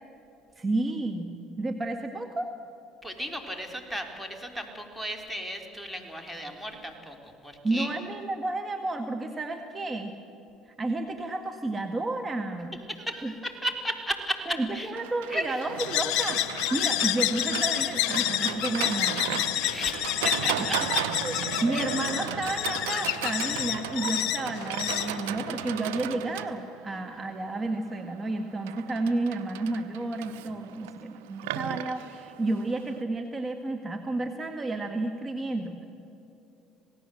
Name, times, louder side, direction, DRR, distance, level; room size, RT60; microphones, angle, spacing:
voice 1, 0.6-2.5 7.6-10.1 10.7-12.9 13.2-13.3 14.5-19.4 20.5-20.7 21.0-21.3 21.6-35.8, right 2 dB, 30° right, 6 dB, 1.7 m, -31 dB
voice 2, 3.0-7.9 12.9-14.9 15.3-15.6 19.6-21.1 26.9-27.0, equal, ahead, 3 dB, 3.7 m, -35 dB
Livestock farm animals working animals, 15.0-33.0, right 12 dB, 90° right, 0.9 m, -36 dB
sound 1, 15.8-26.0, left 13 dB, 70° left, 0.9 m, -29 dB
27.0 x 18.0 x 7.7 m, 2.8 s
supercardioid pair, 75°, 0 cm